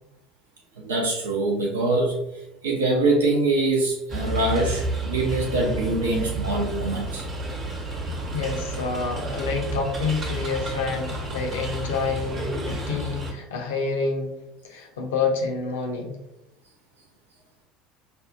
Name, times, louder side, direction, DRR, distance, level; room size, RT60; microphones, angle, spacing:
voice 1, 0.8-7.3, right 2 dB, 75° right, 0 dB, 0.6 m, -24 dB
sound 1, 4.1-13.3, right 1 dB, 35° right, 1.0 m, -31 dB
voice 2, 8.3-14.3 14.6-16.2, left 4 dB, 70° left, 2 dB, 0.7 m, -28 dB
5.0 x 2.3 x 2.6 m, 0.86 s
figure-of-eight pair, 65°, 0 cm